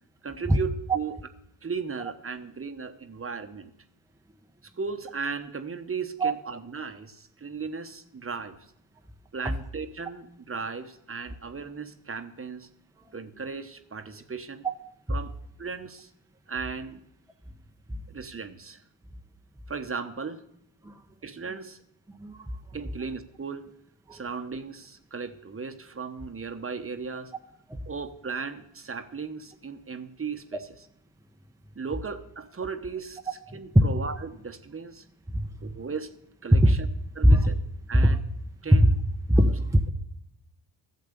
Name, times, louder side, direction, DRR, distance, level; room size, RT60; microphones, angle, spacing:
voice 1, 0.2-1.2 1.6-3.7 4.8-8.6 9.3-12.7 13.1-14.7 15.1-16.1 16.5-17.0 18.1-18.8 19.7-20.4 21.2-21.8 22.7-23.7 24.1-27.3 27.9-30.7 31.7-33.2 33.5-35.0 35.6-36.1 36.4-36.9 37.1-37.5 37.9-38.2 38.6-38.9, right 5 dB, 30° right, 8 dB, 1.1 m, -36 dB
voice 2, 35.3-35.7 36.5-36.7 37.2-37.4 37.9-38.2 38.8-38.9 39.3-39.9, equal, 5° right, 3 dB, 0.8 m, -20 dB
12.0 x 7.5 x 6.8 m, 0.75 s
supercardioid pair, 60°, 47 cm